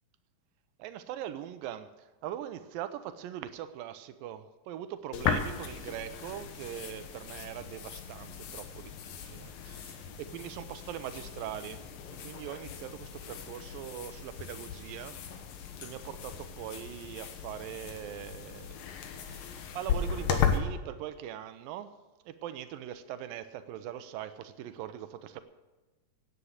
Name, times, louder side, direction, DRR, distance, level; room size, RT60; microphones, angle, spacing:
voice 1, 0.8-1.9 2.2-11.8 12.2-15.2 15.8-18.8 19.3-19.5 19.8-21.9 22.3-25.4, right 11 dB, 85° right, 11 dB, 2.5 m, -41 dB
sound 1, 5.1-20.6, left 7 dB, 90° left, 3.0 m, -36 dB
17.0 x 9.8 x 6.5 m, 1.1 s
omnidirectional pair, 3.9 m